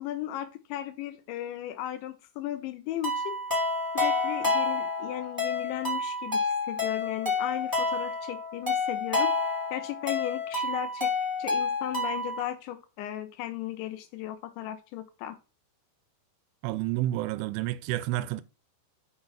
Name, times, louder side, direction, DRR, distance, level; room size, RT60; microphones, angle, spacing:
voice 1, 0.0-3.4 3.9-9.3 9.7-11.1 11.4-15.4, left 13 dB, 80° left, 2.9 m, -36 dB
sound 1, 3.0-12.4, left 3 dB, 5° right, 1.6 m, -29 dB
voice 2, 16.6-18.4, right 15 dB, 85° right, 3.0 m, -30 dB
6.4 x 5.9 x 5.7 m
omnidirectional pair, 5.6 m